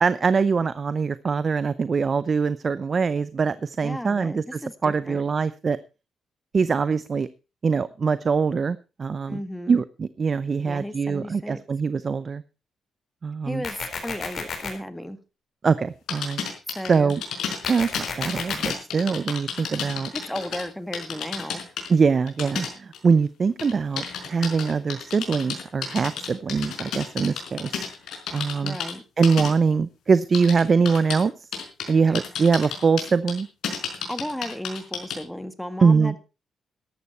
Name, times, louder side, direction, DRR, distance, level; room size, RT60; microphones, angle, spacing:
voice 1, 0.0-5.8 6.5-7.3 7.6-9.4 9.7-12.4 13.2-13.6 15.6-16.4 16.9-17.2 17.7-20.1 21.9-27.7 28.3-28.8 29.2-31.5 31.9-33.5 35.8-36.1, right 5 dB, 45° right, 16 dB, 0.6 m, -23 dB
voice 2, 3.8-5.2 9.3-9.8 10.7-11.6 13.5-15.2 16.7-17.1 20.3-21.6 28.6-29.0 34.1-36.2, equal, 5° left, 11 dB, 1.7 m, -34 dB
sound 1, 13.6-14.7 17.6-18.7, left 5 dB, 55° left, 4.2 m, -32 dB
sound 2, 16.1-20.6 20.9-21.9 22.3-23.1 23.6-28.9 29.2-29.5 30.3-31.2 31.5-31.9 32.1-35.2, left 7 dB, 80° left, 4.9 m, -31 dB
14.0 x 11.0 x 4.4 m, 0.31 s
cardioid pair, 85°, 0 cm